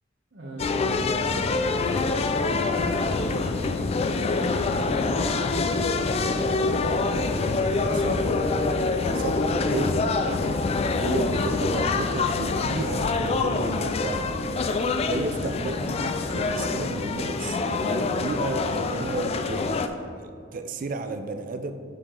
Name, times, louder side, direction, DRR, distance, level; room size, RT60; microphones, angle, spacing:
voice 1, 0.3-8.8 9.5-10.6 15.6-15.9, equal, 65° right, -4 dB, 0.9 m, -40 dB
sound 1, 0.6-19.9, left 3 dB, 35° left, 0.3 m, -25 dB
voice 2, 7.9-8.2 9.2-9.8 10.1-10.5 11.0-14.4 15.0-19.7 20.2-21.7, right 3 dB, 45° right, 8 dB, 0.4 m, -33 dB
6.8 x 4.7 x 3.7 m, 2.2 s
head